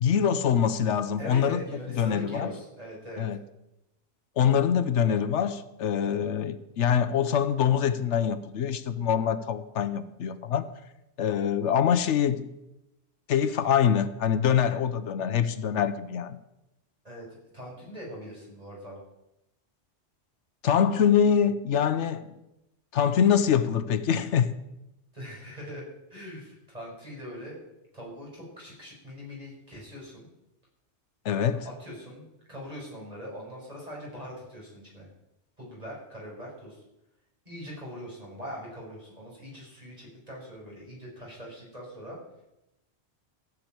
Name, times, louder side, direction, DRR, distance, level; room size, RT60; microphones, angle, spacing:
voice 1, 0.0-1.6 2.0-2.5 3.2-3.4 4.4-10.7 11.2-12.5 13.3-16.4 20.6-22.3 22.9-24.6 31.2-31.7, left 8 dB, 80° left, 1.0 m, -24 dB
voice 2, 1.2-3.2 17.0-19.0 25.1-25.8 26.1-27.6 27.9-30.3 31.5-35.1 35.6-36.8 37.5-42.2, equal, 30° right, 5.7 m, -42 dB
15.0 x 6.3 x 8.9 m
omnidirectional pair, 1.2 m